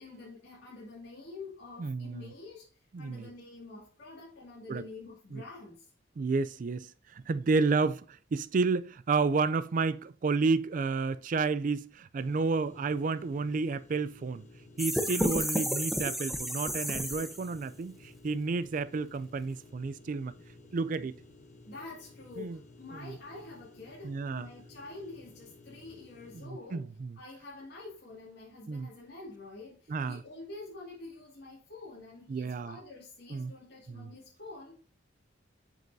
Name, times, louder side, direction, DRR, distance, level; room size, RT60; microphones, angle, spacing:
voice 1, 0.0-5.9 21.0-21.1 21.7-34.7, left 3 dB, 60° left, 2.3 m, -47 dB
voice 2, 1.8-2.3 2.9-3.3 4.7-4.9 5.3-5.4 6.2-14.4 14.8-20.3 20.7-21.1 22.4-22.6 22.9-23.1 24.0-24.5 26.3-27.2 28.7-28.9 29.9-30.2 32.3-32.8 33.3-33.5 33.9-34.1, right 4 dB, 45° right, 0.4 m, -31 dB
sound 1, 12.2-26.5, left 2 dB, 40° left, 0.9 m, -55 dB
sound 2, 14.8-17.6, equal, ahead, 0.6 m, -32 dB
7.8 x 5.2 x 2.6 m
head